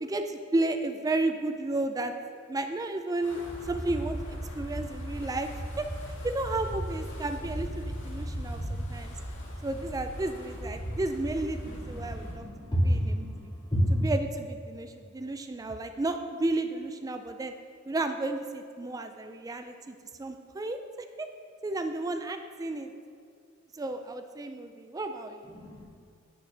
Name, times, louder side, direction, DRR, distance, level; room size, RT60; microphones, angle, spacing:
voice 1, 0.0-2.1 2.5-3.4 3.6-5.5 5.8-5.9 6.2-9.1 9.6-12.5 12.8-13.4 13.9-17.5 17.9-20.8 21.2-21.3 21.6-22.9 23.7-25.4, right 2 dB, 15° right, 7 dB, 0.4 m, -32 dB
Wind, 3.2-12.4, equal, 65° left, 1.7 m, -37 dB
voice 2, 12.1-13.4 13.7-14.0 25.4-25.8, equal, 25° left, -6 dB, 2.5 m, -28 dB
10.0 x 8.6 x 3.3 m, 2.3 s
head